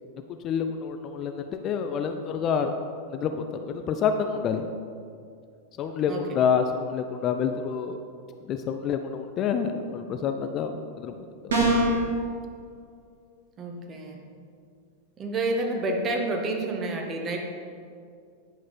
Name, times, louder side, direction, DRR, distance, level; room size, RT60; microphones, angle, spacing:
voice 1, 0.4-2.7 3.1-4.7 5.8-8.0 8.5-11.2, left 7 dB, 35° left, 6 dB, 0.5 m, -28 dB
sound 1, 11.5-12.0, right 1 dB, 65° right, 2.0 m, -21 dB
voice 2, 13.6-14.2 15.2-17.4, right 2 dB, 25° right, 2 dB, 1.3 m, -29 dB
9.9 x 6.2 x 4.3 m, 2.3 s
figure-of-eight pair, 90°, 0 cm